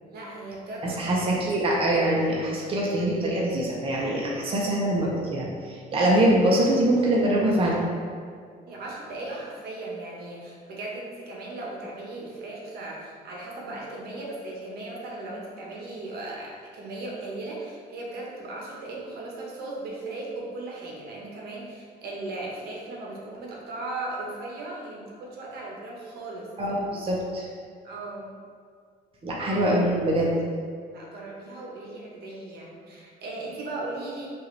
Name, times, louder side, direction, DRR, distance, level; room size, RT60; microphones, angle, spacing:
voice 1, 0.0-1.4 8.6-26.5 27.8-28.4 29.5-29.6 30.9-34.3, right 2 dB, 70° right, -3 dB, 1.0 m, -37 dB
voice 2, 0.8-7.8 26.6-27.5 29.2-30.3, right 1 dB, 35° right, -4 dB, 0.8 m, -24 dB
5.6 x 2.6 x 3.2 m, 2.1 s
cardioid pair, 110°, 17 cm